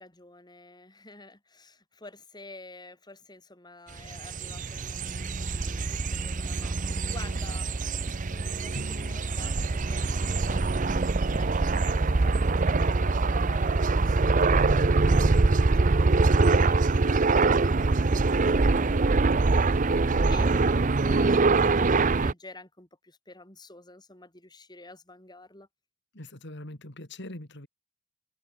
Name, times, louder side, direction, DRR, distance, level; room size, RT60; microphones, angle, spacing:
voice 1, 0.0-7.9 8.3-14.9 15.1-25.7, left 2 dB, 20° left, 6.1 m, -49 dB
sound 1, 4.0-22.3, right 3 dB, 40° right, 0.7 m, -24 dB
Drum, 8.7-11.5, equal, 65° right, 5.4 m, -47 dB
voice 2, 26.1-27.7, left 1 dB, 60° left, 3.8 m, -41 dB
head